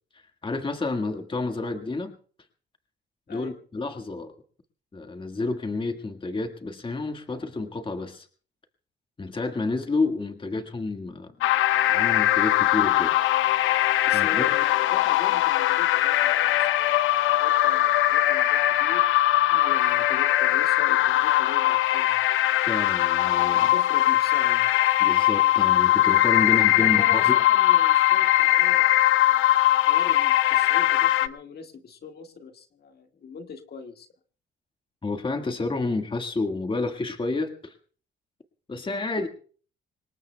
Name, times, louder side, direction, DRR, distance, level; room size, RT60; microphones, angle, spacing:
voice 1, 0.1-2.1 3.3-4.3 4.9-8.3 9.2-11.3 11.7-13.1 14.1-14.4 22.7-23.7 25.0-27.4 35.0-37.7 38.7-39.3, left 3 dB, 25° left, 6 dB, 1.7 m, -30 dB
sound 1, 11.4-31.3, left 14 dB, 85° left, 0.7 m, -21 dB
voice 2, 14.0-19.1 19.5-22.2 23.7-24.7 26.4-29.1 29.9-34.1, left 5 dB, 55° left, 5 dB, 1.8 m, -41 dB
26.0 x 20.0 x 2.3 m, 0.43 s
cardioid pair, 90°, 20 cm